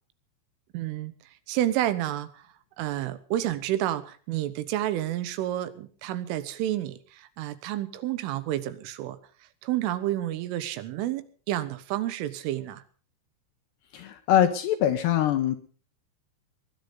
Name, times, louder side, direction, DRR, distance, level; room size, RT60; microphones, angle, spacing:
voice 1, 0.7-1.1 1.5-2.4 2.8-9.2 9.6-12.8, right 13 dB, 80° right, 13 dB, 3.6 m, -30 dB
voice 2, 13.9-15.6, left 11 dB, 75° left, 8 dB, 2.7 m, -23 dB
20.0 x 12.0 x 5.4 m, 0.41 s
omnidirectional pair, 5.8 m